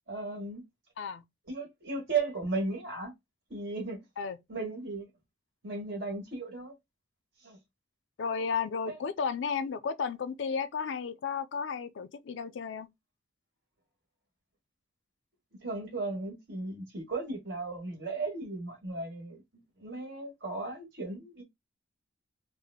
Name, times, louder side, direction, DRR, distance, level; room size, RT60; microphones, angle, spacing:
voice 1, 0.1-0.6 1.5-3.1 3.5-4.0 4.5-5.1 5.6-6.7 7.4-7.6 8.9-9.0 15.6-19.4 19.8-21.4, right 3 dB, 60° right, 1.6 m, -35 dB
voice 2, 8.2-12.9, left 6 dB, 65° left, 0.4 m, -33 dB
3.5 x 2.0 x 3.5 m
head